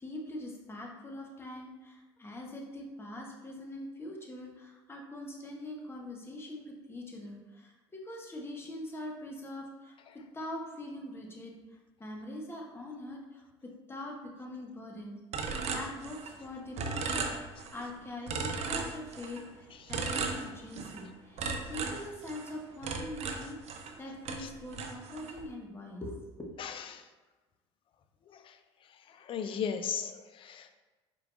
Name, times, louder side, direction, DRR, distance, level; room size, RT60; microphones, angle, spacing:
voice 1, 0.0-11.5 12.0-15.2 15.7-26.6, left 1 dB, 15° left, 0 dB, 1.0 m, -43 dB
sound 1, 15.3-16.5 16.8-17.9 18.3-19.4 19.9-21.0 21.4-24.0 24.2-25.4, right 4 dB, 50° right, 0.5 m, -36 dB
voice 2, 26.6-27.0 29.3-30.8, left 7 dB, 40° left, 9 dB, 0.4 m, -36 dB
4.4 x 3.8 x 2.4 m, 1.2 s
hypercardioid pair, 70°, 14 cm